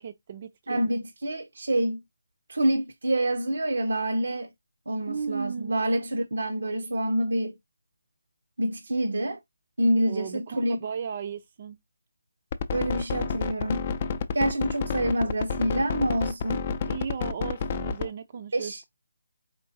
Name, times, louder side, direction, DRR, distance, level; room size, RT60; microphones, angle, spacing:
voice 1, 0.0-0.8 5.1-5.8 10.1-11.8 16.9-18.8, right 6 dB, 35° right, 0.4 m, -35 dB
voice 2, 0.7-2.0 2.5-4.5 4.9-7.5 8.6-9.4 9.8-10.8 12.7-13.9 14.3-16.6 18.5-18.8, right 1 dB, 75° right, 0.6 m, -27 dB
sound 1, 12.5-18.1, left 5 dB, 35° left, 0.4 m, -29 dB
4.5 x 3.1 x 2.7 m
figure-of-eight pair, 155°, 0 cm